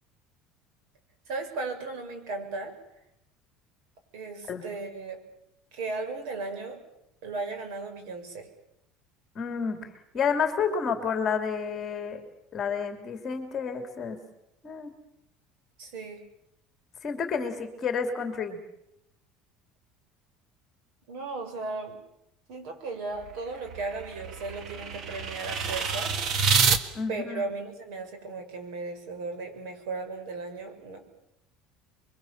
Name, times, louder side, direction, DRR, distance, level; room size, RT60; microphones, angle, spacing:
voice 1, 1.3-2.7 4.1-5.2 5.7-6.8 7.2-8.5 15.8-16.2 21.1-22.0 22.5-26.1 27.1-31.0, right 3 dB, 60° right, 6 dB, 6.7 m, -36 dB
voice 2, 9.3-12.2 12.5-14.2 14.6-14.9 17.0-18.6 26.9-27.4, left 6 dB, 25° left, 6 dB, 3.0 m, -30 dB
sound 1, 23.2-26.8, right 5 dB, 35° right, 1.7 m, -27 dB
29.0 x 23.0 x 7.4 m, 0.83 s
cardioid pair, 180°, 0 cm